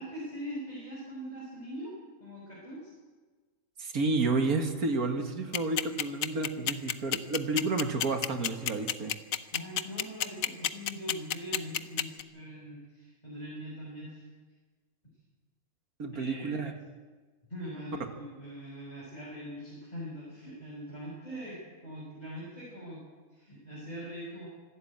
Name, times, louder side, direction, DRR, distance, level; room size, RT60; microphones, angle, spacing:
voice 1, 0.0-1.9 2.2-2.9 9.5-14.2 16.1-16.6 17.5-23.0 23.3-24.5, equal, 30° left, -6 dB, 6.1 m, -42 dB
voice 2, 3.8-9.1 16.0-16.7, right 3 dB, 85° right, 5 dB, 2.3 m, -30 dB
sound 1, 5.5-12.2, left 10 dB, 70° left, 1.2 m, -29 dB
25.5 x 12.5 x 8.7 m, 1.4 s
omnidirectional pair, 1.5 m